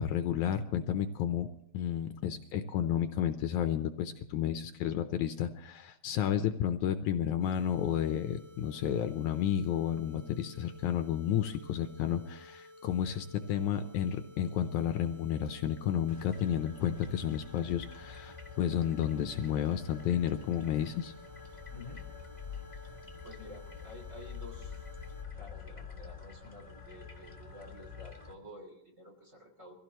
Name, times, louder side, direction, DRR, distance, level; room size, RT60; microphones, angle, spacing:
voice 1, 0.0-1.5 1.7-21.1, left 9 dB, 75° left, 8 dB, 2.0 m, -31 dB
sound 1, 7.4-25.3, left 1 dB, 65° right, 3.6 m, -54 dB
sound 2, 16.1-28.3, left 6 dB, 30° left, 0.6 m, -47 dB
voice 2, 21.7-22.0 23.2-24.8 25.4-29.7, left 1 dB, 25° right, 2 dB, 3.1 m, -50 dB
23.5 x 16.0 x 3.0 m, 0.80 s
omnidirectional pair, 3.7 m